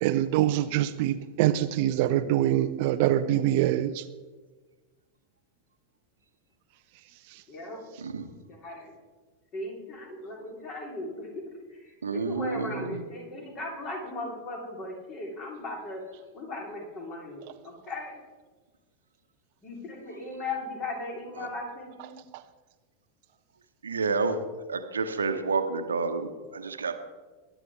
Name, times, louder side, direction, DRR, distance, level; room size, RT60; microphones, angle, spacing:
voice 1, 0.0-4.0, right 13 dB, 45° right, 12 dB, 0.5 m, -24 dB
voice 2, 7.5-7.8 8.5-8.9 9.5-11.3 11.7-16.0 16.3-18.2 19.6-22.2, left 2 dB, 35° left, 0 dB, 3.7 m, -37 dB
voice 3, 12.0-13.0 21.3-21.5 23.8-24.4 24.7-27.0, right 4 dB, 70° right, 8 dB, 1.0 m, -29 dB
20.5 x 10.0 x 3.6 m, 1.3 s
figure-of-eight pair, 90°, 0 cm